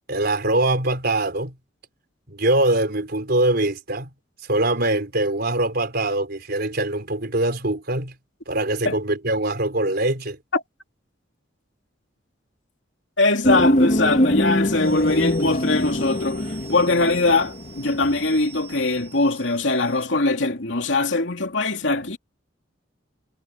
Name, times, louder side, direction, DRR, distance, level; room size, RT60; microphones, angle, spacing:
voice 1, 0.1-1.6 2.3-4.1 4.5-8.1 8.5-10.4, right 2 dB, 55° right, 4.7 m, -23 dB
voice 2, 13.2-22.2, left 2 dB, 70° left, 2.9 m, -22 dB
sound 1, 13.4-18.8 19.1-19.2, left 1 dB, 40° left, 1.7 m, -23 dB
sound 2, 14.6-20.3, right 8 dB, 35° right, 7.9 m, -46 dB
head